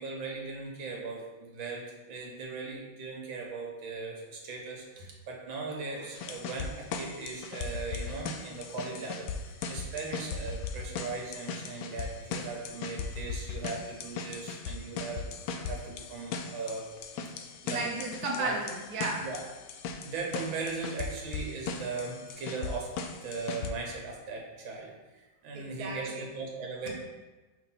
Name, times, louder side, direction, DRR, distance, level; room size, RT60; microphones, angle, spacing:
voice 1, 0.0-16.9 17.2-17.8 18.4-18.5 19.2-19.4 20.0-22.9 23.2-26.9, right 4 dB, 80° right, -1 dB, 1.9 m, -39 dB
sound 1, 6.2-23.7, left 5 dB, 70° left, 1.1 m, -38 dB
voice 2, 17.7-19.3 25.5-26.3, right 2 dB, 60° right, -2 dB, 1.2 m, -34 dB
5.8 x 3.1 x 5.6 m, 1.2 s
omnidirectional pair, 2.1 m